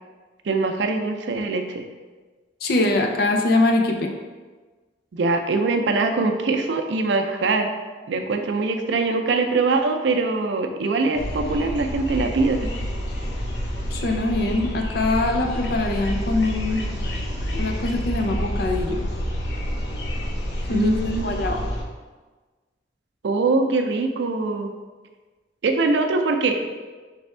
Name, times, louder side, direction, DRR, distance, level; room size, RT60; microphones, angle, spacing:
voice 1, 0.4-1.9 5.1-7.7 8.1-12.7 20.7-21.4 23.2-24.7 25.6-26.7, right 3 dB, 80° right, 5 dB, 0.4 m, -23 dB
voice 2, 2.6-4.1 13.9-16.8 17.5-19.1 20.7-21.6, left 2 dB, 55° left, 2 dB, 0.5 m, -23 dB
sound 1, 11.1-21.8, equal, 75° left, 0.8 m, -28 dB
3.4 x 3.3 x 4.2 m, 1.3 s
head